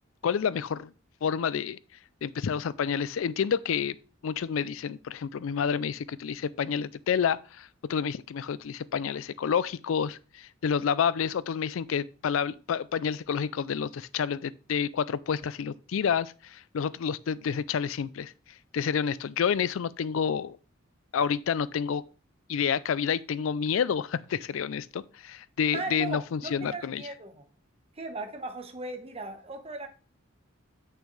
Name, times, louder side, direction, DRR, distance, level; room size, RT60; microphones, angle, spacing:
voice 1, 0.2-0.9 1.2-1.8 2.2-4.0 4.2-18.3 18.7-20.6 21.1-22.0 22.5-27.0, left 7 dB, 75° left, 0.4 m, -29 dB
voice 2, 25.7-27.4 28.0-29.9, right 3 dB, 30° right, 1.0 m, -37 dB
8.3 x 6.5 x 3.2 m
head